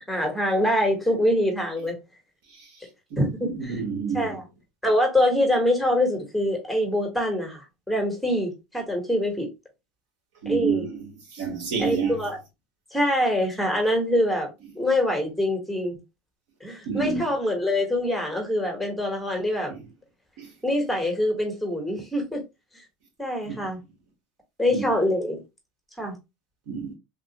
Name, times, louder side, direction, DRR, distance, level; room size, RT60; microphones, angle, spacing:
voice 1, 0.1-2.0 3.2-3.8 4.1-4.4 4.8-9.5 10.5-10.8 11.8-12.4 12.9-16.0 16.6-19.7 20.6-22.4 23.2-23.8 24.6-25.4 26.0-26.1, left 1 dB, ahead, 1.1 m, -24 dB
voice 2, 3.1-4.3 10.4-11.0 11.3-12.2 16.9-17.2 19.7-19.8 20.4-20.5 23.4-23.7 24.7-24.8 26.7-27.0, right 6 dB, 75° right, 1.4 m, -28 dB
3.5 x 2.3 x 2.9 m
supercardioid pair, 135°, 3 cm